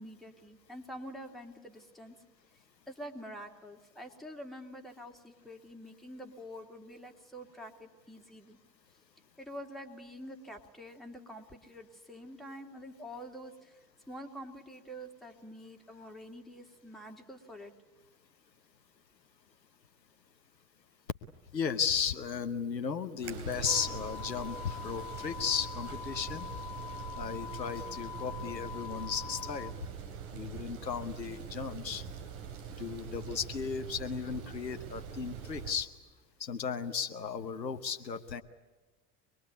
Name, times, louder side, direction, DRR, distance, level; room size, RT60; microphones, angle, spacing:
voice 1, 0.0-2.2 2.9-8.6 9.4-13.8 14.1-17.7, equal, ahead, 2 dB, 3.0 m, -47 dB
voice 2, 21.5-26.5 27.2-29.7 30.3-32.0 32.8-35.9 36.4-38.4, left 6 dB, 85° left, 9 dB, 1.1 m, -35 dB
sound 1, 23.2-35.8, right 7 dB, 55° right, 3.3 m, -43 dB
sound 2, 23.7-29.7, left 9 dB, 40° left, 1.2 m, -44 dB
25.0 x 21.5 x 9.5 m, 1.2 s
figure-of-eight pair, 75°, 50 cm